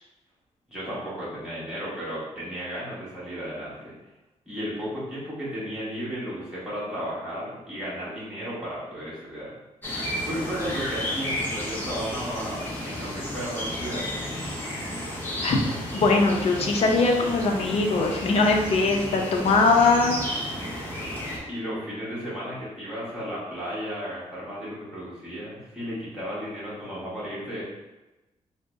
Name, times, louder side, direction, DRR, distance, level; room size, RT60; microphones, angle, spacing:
voice 1, 0.7-3.9 4.5-9.5 10.2-14.1 21.4-27.6, equal, 5° right, -9 dB, 1.3 m, -34 dB
sound 1, 9.8-21.4, left 1 dB, 15° left, 0.7 m, -32 dB
voice 2, 15.4-20.2, left 3 dB, 55° left, 1 dB, 0.5 m, -21 dB
3.7 x 2.1 x 3.5 m, 1.1 s
wide cardioid pair, 155°, 13 cm